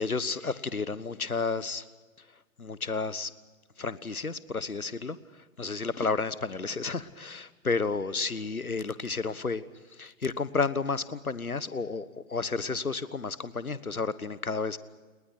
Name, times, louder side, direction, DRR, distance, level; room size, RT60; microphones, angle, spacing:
voice 1, 0.0-1.9 2.2-3.3 3.8-14.8, left 4 dB, 85° left, 16 dB, 1.4 m, -32 dB
30.0 x 20.0 x 6.1 m, 1.3 s
figure-of-eight pair, 120°, 42 cm